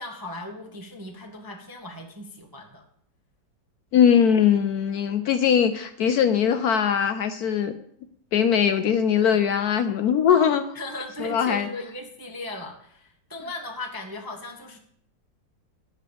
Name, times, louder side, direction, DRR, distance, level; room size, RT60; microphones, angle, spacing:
voice 1, 0.0-2.8 9.2-9.4 10.7-14.8, left 1 dB, 20° right, 2 dB, 0.5 m, -37 dB
voice 2, 3.9-7.7 8.3-10.6 11.2-11.7, left 8 dB, 70° left, 9 dB, 0.9 m, -21 dB
9.1 x 5.6 x 6.9 m, 0.70 s
omnidirectional pair, 2.0 m